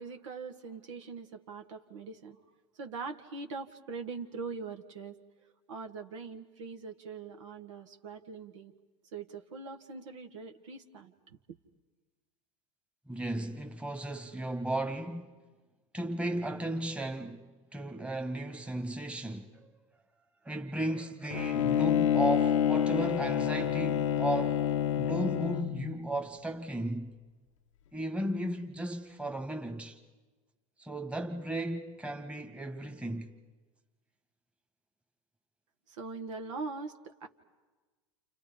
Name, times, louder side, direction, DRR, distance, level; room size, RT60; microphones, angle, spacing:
voice 1, 0.0-2.4 2.7-5.2 5.7-8.7 9.1-11.4 35.9-37.3, right 4 dB, 70° right, 1.6 m, -42 dB
voice 2, 13.1-15.4 15.9-19.7 20.4-24.7 25.0-27.1 27.9-30.0 30.8-33.3, right 1 dB, 5° right, 1.7 m, -35 dB
Bowed string instrument, 21.3-26.0, left 10 dB, 75° left, 0.8 m, -28 dB
29.5 x 29.0 x 5.3 m
hypercardioid pair, 90°, 16 cm